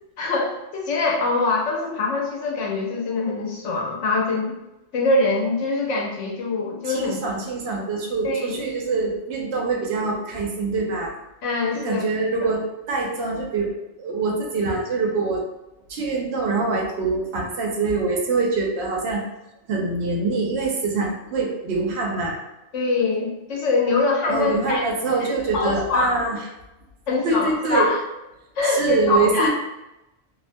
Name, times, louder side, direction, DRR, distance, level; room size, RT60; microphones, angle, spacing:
voice 1, 0.2-4.6 4.9-7.2 8.2-8.6 11.4-12.1 22.7-24.9 25.2-25.3 25.5-26.1 27.1-28.0 28.6-29.5, left 3 dB, 80° left, -1 dB, 1.0 m, -23 dB
voice 2, 6.9-11.1 11.7-13.7 14.0-15.5 15.9-19.2 19.7-22.4 24.3-26.4 27.2-27.9 28.6-29.5, right 3 dB, 70° right, 0 dB, 0.8 m, -24 dB
2.4 x 2.1 x 2.5 m, 0.95 s
omnidirectional pair, 1.2 m